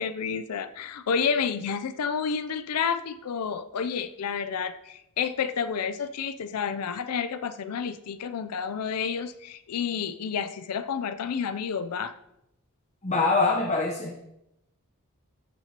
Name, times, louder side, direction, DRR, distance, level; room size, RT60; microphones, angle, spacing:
voice 1, 0.0-12.1, left 6 dB, 90° left, 11 dB, 0.5 m, -30 dB
voice 2, 13.0-14.2, left 3 dB, 30° left, 0 dB, 0.9 m, -24 dB
14.0 x 5.9 x 2.9 m, 0.85 s
head